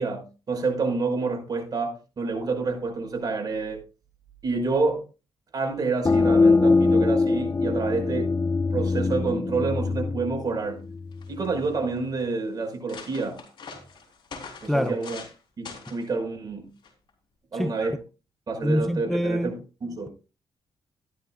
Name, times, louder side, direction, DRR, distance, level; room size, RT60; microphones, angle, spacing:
voice 1, 0.0-3.8 4.4-5.1 5.5-8.3 8.7-10.8 11.3-13.4 14.6-15.2 15.6-16.7 17.5-18.0 18.5-20.1, right 3 dB, 45° right, 5.5 m, -28 dB
sound 1, 6.0-11.4, left 3 dB, 30° left, 1.2 m, -23 dB
sound 2, 10.8-10.9 11.1-11.7 12.3-12.4 12.7-15.4 15.7-16.1 16.8-17.1, left 5 dB, 60° left, 4.1 m, -43 dB
voice 2, 17.5-17.9 18.6-19.5, equal, ahead, 0.6 m, -25 dB
14.5 x 11.5 x 2.5 m
cardioid pair, 90°, 9 cm